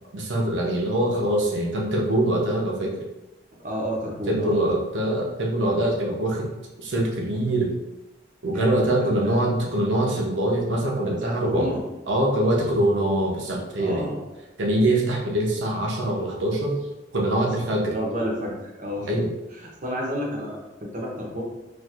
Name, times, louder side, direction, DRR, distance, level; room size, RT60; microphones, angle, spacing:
voice 1, 0.1-3.0 4.3-6.5 6.8-7.7 8.4-11.7 12.1-14.0 14.6-16.8 17.1-17.9 19.1-19.3, right 1 dB, 75° right, -1 dB, 0.7 m, -23 dB
voice 2, 3.5-4.7 8.4-9.4 11.1-11.8 13.8-14.2 17.4-19.1 19.5-21.4, equal, 40° right, -1 dB, 0.7 m, -31 dB
4.2 x 2.5 x 2.4 m, 1.0 s
head